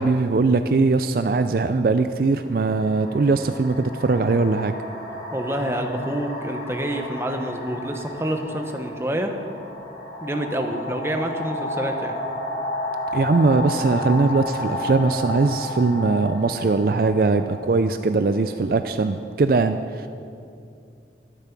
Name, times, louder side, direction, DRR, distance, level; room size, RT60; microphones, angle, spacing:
voice 1, 0.0-4.7 13.1-20.1, right 3 dB, 55° right, 9 dB, 0.4 m, -21 dB
sound 1, 2.3-18.9, left 1 dB, 65° left, 3.9 m, -33 dB
voice 2, 5.3-9.3 10.2-12.2, right 1 dB, 15° right, 4 dB, 1.0 m, -27 dB
12.5 x 11.5 x 6.0 m, 2.4 s
head